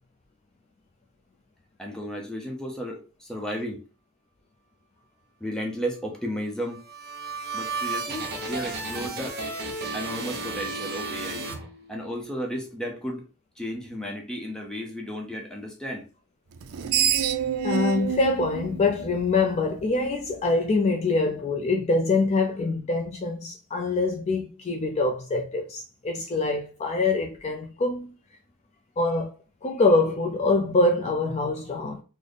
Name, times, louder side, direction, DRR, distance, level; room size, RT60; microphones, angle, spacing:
voice 1, 1.8-3.8 5.4-6.8 7.5-9.4 9.9-11.5 11.9-13.2 13.6-16.1, equal, 5° left, 0.7 m, -33 dB
sound 1, 6.6-12.2, right 3 dB, 45° right, 0.9 m, -33 dB
Screech, 16.6-19.8, right 8 dB, 70° right, 0.4 m, -27 dB
voice 2, 17.6-28.1 29.0-29.3 29.6-32.0, left 3 dB, 30° left, 0.4 m, -24 dB
3.3 x 2.1 x 3.9 m
head